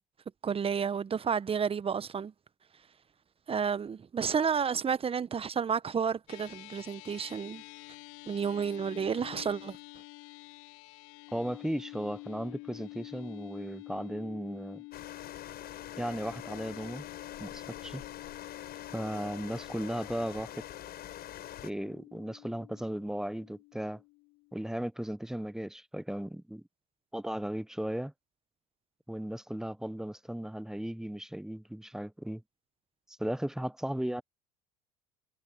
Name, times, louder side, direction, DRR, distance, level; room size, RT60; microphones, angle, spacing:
voice 1, 0.4-2.3 3.5-7.6 8.3-9.8, right 6 dB, 30° right, 1.1 m, -31 dB
sound 1, 6.3-24.8, left 25 dB, 70° left, 2.5 m, -49 dB
voice 2, 11.3-14.8 16.0-17.1 17.4-18.0 18.9-20.5 21.6-24.0 24.5-26.6 27.1-28.1 29.1-32.4 33.2-34.2, right 1 dB, ahead, 0.8 m, -36 dB
sound 2, 14.9-21.7, left 12 dB, 50° left, 7.1 m, -45 dB
hypercardioid pair, 75°, 20 cm